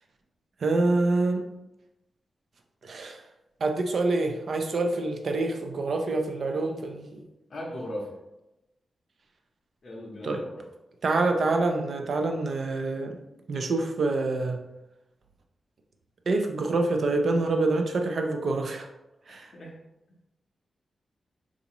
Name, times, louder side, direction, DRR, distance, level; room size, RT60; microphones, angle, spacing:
voice 1, 0.6-1.5 2.8-3.2 3.6-7.2 10.2-10.4 11.0-13.2 13.5-14.6 16.3-18.9 19.3-19.5, right 2 dB, 55° right, 4 dB, 0.4 m, -26 dB
voice 2, 7.5-8.2 9.8-10.6 19.3-19.7, left 1 dB, 50° left, -4 dB, 0.6 m, -38 dB
3.9 x 2.4 x 2.9 m, 0.94 s
wide cardioid pair, 160°, 0 cm